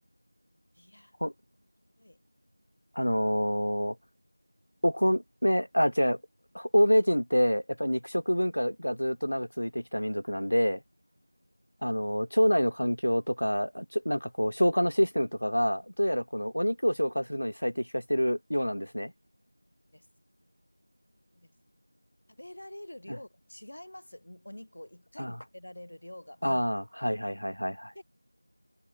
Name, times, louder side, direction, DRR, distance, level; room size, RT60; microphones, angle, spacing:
voice 1, 0.7-1.1 2.0-2.2 19.9-20.1 21.3-21.5 22.3-26.6 27.9-28.0, left 1 dB, 15° left, 4.5 m, -47 dB
voice 2, 2.9-4.0 4.8-6.2 6.5-10.8 11.8-19.1 25.2-25.4 26.4-27.9, equal, 45° left, 3.1 m, -27 dB
figure-of-eight pair, 180°, 0 cm